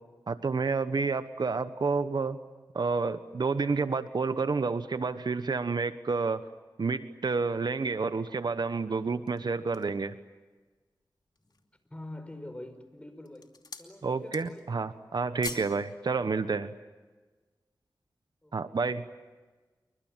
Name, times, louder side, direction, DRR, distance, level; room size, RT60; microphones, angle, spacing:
voice 1, 0.3-2.4 2.7-6.4 6.8-10.1 14.0-16.7 18.5-19.0, right 4 dB, 70° right, 12 dB, 1.2 m, -29 dB
sound 1, 9.0-10.0 10.6-10.7 11.2-11.8 12.5-12.8 13.2-13.9 14.2-14.7 15.0-15.8 16.1-16.3, left 3 dB, 65° left, 2.8 m, -44 dB
voice 2, 11.9-13.5 13.8-14.7 18.4-18.8, left 1 dB, 15° left, 9 dB, 5.1 m, -45 dB
29.0 x 24.5 x 7.6 m, 1.3 s
wide cardioid pair, 55°, 8 cm